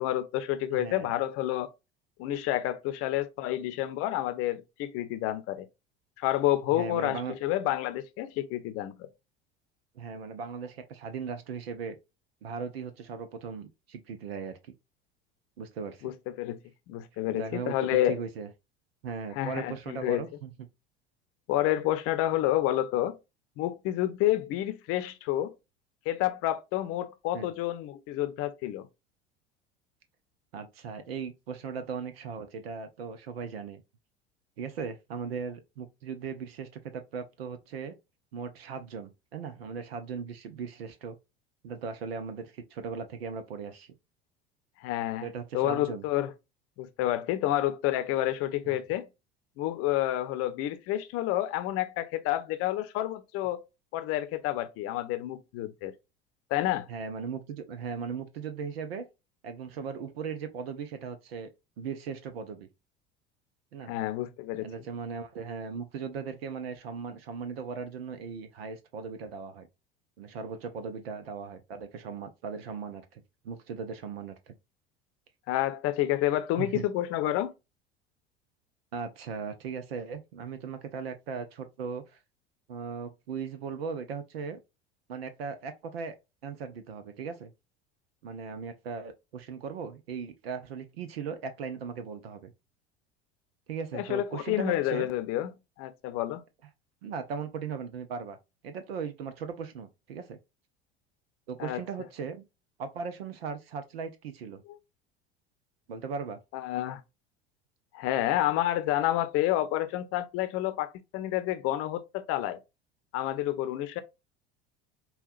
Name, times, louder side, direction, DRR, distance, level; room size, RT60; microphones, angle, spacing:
voice 1, 0.0-1.7 2.2-5.7 6.2-9.1 16.0-16.6 16.9-18.2 19.4-20.2 21.5-23.2 23.6-25.5 26.1-28.9 44.8-45.3 45.5-46.3 46.8-49.1 49.6-53.6 53.9-55.9 56.5-56.9 63.9-64.7 75.5-77.5 93.9-95.5 95.8-96.4 101.6-101.8 106.5-107.0 107.9-112.6 113.1-114.0, left 14 dB, 45° left, 0.7 m, -29 dB
voice 2, 0.7-1.1 6.7-7.3 10.0-12.0 12.4-14.7 15.6-16.1 17.3-17.8 18.0-18.5 19.0-20.5 27.3-27.5 30.5-33.8 34.6-38.0 38.3-41.2 41.6-43.9 45.2-46.0 48.7-48.8 56.9-59.1 59.4-61.5 61.8-62.7 63.7-63.9 64.6-69.7 70.2-74.5 76.6-76.8 78.9-82.2 82.7-84.6 85.1-86.2 86.4-87.5 88.2-92.5 93.7-95.1 97.0-98.4 98.6-100.4 101.5-102.4 102.8-104.6 105.9-106.4, right 6 dB, 70° right, 0.8 m, -38 dB
5.5 x 2.4 x 2.4 m
figure-of-eight pair, 70°, 32 cm